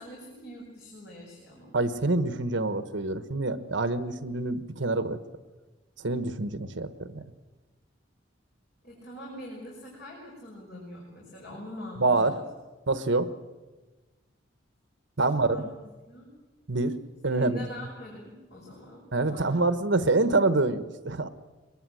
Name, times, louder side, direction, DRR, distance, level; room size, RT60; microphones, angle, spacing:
voice 1, 0.0-1.8 8.8-12.4 15.3-15.7 16.1-16.3 17.3-19.6, left 1 dB, 55° left, -2 dB, 5.5 m, -43 dB
voice 2, 1.7-5.2 6.0-7.2 12.0-12.4 12.9-13.3 15.2-15.6 16.7-17.7 19.1-21.3, right 2 dB, 70° right, 12 dB, 1.3 m, -26 dB
23.0 x 21.5 x 7.8 m, 1.2 s
head